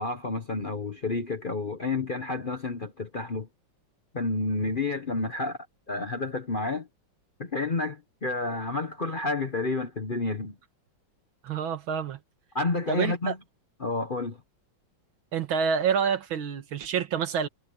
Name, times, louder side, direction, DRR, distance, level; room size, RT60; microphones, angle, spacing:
voice 1, 0.0-3.5 4.1-5.6 5.9-6.9 7.4-10.6 12.5-13.4 13.8-14.4, left 3 dB, 35° left, 0.9 m, -30 dB
voice 2, 11.4-12.2 12.9-13.3 15.3-17.5, right 7 dB, 85° right, 2.2 m, -27 dB
omnidirectional pair, 2.2 m